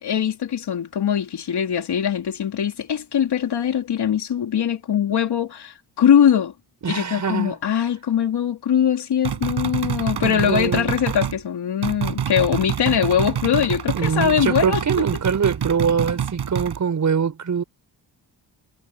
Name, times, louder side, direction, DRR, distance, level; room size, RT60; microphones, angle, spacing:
voice 1, 0.0-6.5 6.9-15.1, left 8 dB, 70° left, 3.1 m, -21 dB
voice 2, 6.8-7.6 10.2-11.0 13.9-17.6, right 6 dB, 45° right, 6.0 m, -23 dB
sound 1, 9.2-11.4 11.8-16.8, right 8 dB, 70° right, 7.8 m, -27 dB
wide cardioid pair, 175°, 41 cm